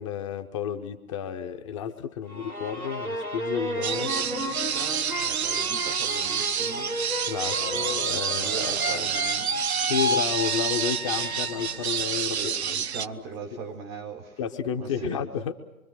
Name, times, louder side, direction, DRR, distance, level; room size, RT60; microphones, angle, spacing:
voice 1, 0.0-4.1 7.3-9.1 9.8-12.8 14.4-15.5, left 8 dB, 20° left, 7 dB, 0.8 m, -31 dB
sound 1, 2.3-12.1 12.5-13.2, equal, 90° right, 2.2 m, -32 dB
sound 2, 3.8-13.1, right 8 dB, 50° right, 0.7 m, -29 dB
voice 2, 3.9-6.9 7.5-9.5 12.3-14.4 14.8-15.3, right 4 dB, 15° right, 5 dB, 0.8 m, -39 dB
25.0 x 24.0 x 6.6 m, 1.0 s
figure-of-eight pair, 125°, 42 cm